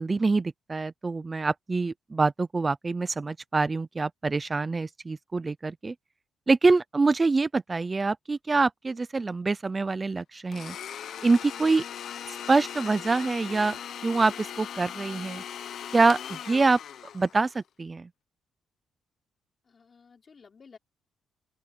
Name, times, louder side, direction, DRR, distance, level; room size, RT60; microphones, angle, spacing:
voice 1, 0.0-5.9 6.5-10.8 11.2-11.8 12.3-13.8 14.0-15.4 15.9-16.8 17.1-18.1, right 3 dB, 25° right, 0.5 m, -25 dB
Domestic sounds home sounds, 10.5-17.6, left 9 dB, 65° left, 1.1 m, -39 dB
voice 2, 19.7-20.8, left 5 dB, 40° left, 3.7 m, -54 dB
open air
cardioid pair, 90°, 0 cm